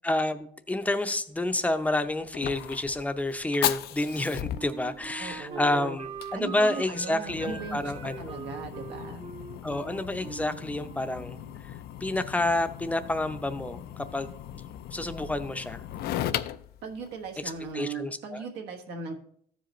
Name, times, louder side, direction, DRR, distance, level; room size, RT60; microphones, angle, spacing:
voice 1, 0.0-8.2 9.6-11.8 12.0-14.4 14.9-15.8 17.7-18.5, left 1 dB, 10° left, 8 dB, 0.6 m, -29 dB
Fire, 1.5-17.7, left 12 dB, 70° left, 0.4 m, -37 dB
Wind instrument woodwind instrument, 4.1-11.6, right 5 dB, 30° right, 0.6 m, -43 dB
voice 2, 5.2-6.0 6.3-7.9 8.2-9.2 16.8-19.1, right 5 dB, 80° right, 3 dB, 1.3 m, -38 dB
14.5 x 5.0 x 3.0 m, 0.65 s
cardioid pair, 110°, 17 cm